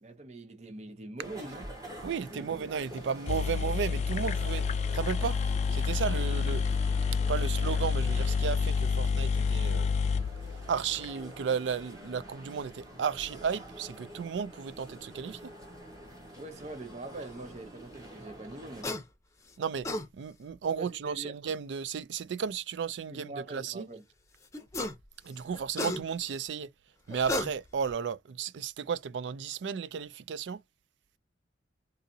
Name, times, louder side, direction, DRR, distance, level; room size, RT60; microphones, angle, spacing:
voice 1, 0.0-1.6 2.3-2.5 16.4-18.9 20.8-21.4 23.1-24.0, right 2 dB, 40° right, 0.7 m, -43 dB
sound 1, 1.2-18.8, equal, 20° right, 1.4 m, -47 dB
voice 2, 2.0-4.7 4.9-5.4 5.7-6.6 7.3-9.9 10.7-15.5 19.6-19.9 20.1-23.9 25.2-26.7 27.1-30.6, right 6 dB, 75° right, 0.4 m, -34 dB
sound 2, 3.0-3.1 3.3-11.1, left 5 dB, 40° left, 0.3 m, -29 dB
sound 3, 18.8-19.0 19.6-20.1 21.5-21.6 24.5-25.0 25.4-26.4 27.1-27.9, left 1 dB, 15° left, 0.7 m, -33 dB
3.8 x 2.7 x 2.7 m
head